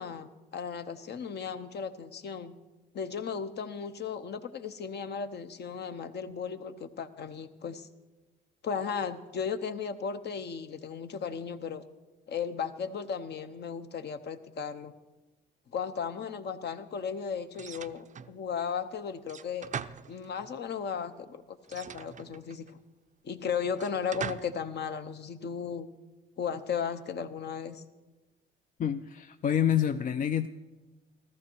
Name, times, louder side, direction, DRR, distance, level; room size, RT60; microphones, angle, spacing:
voice 1, 0.0-2.5 2.9-7.9 8.6-11.8 12.3-14.9 15.7-19.7 20.1-21.4 21.7-22.6 23.2-25.9 26.4-27.8, left 6 dB, 60° left, 9 dB, 0.8 m, -35 dB
sound 1, 17.5-18.4 19.3-20.6 21.6-22.7 23.7-24.6, right 7 dB, 40° right, 0.5 m, -41 dB
voice 2, 28.8-30.5, left 9 dB, 40° left, 10 dB, 0.4 m, -27 dB
14.5 x 13.5 x 4.6 m, 1.1 s
cardioid pair, 90°, 20 cm